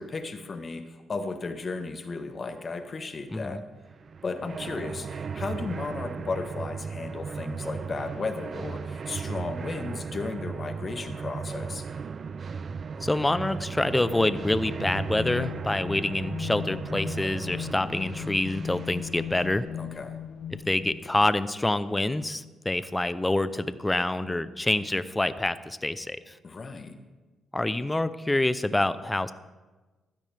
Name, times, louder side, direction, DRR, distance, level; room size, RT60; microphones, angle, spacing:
voice 1, 0.0-3.6 4.2-11.9 19.7-20.2 26.4-27.0, left 3 dB, 40° left, 8 dB, 1.3 m, -35 dB
sound 1, 3.9-19.6, right 5 dB, 45° right, 0.4 m, -36 dB
voice 2, 13.0-19.7 20.7-26.3 27.5-29.3, left 2 dB, 15° left, 14 dB, 0.7 m, -27 dB
sound 2, 13.7-21.3, left 9 dB, 75° left, 0.5 m, -38 dB
15.5 x 12.5 x 3.5 m, 1.2 s
cardioid pair, 85°, 0 cm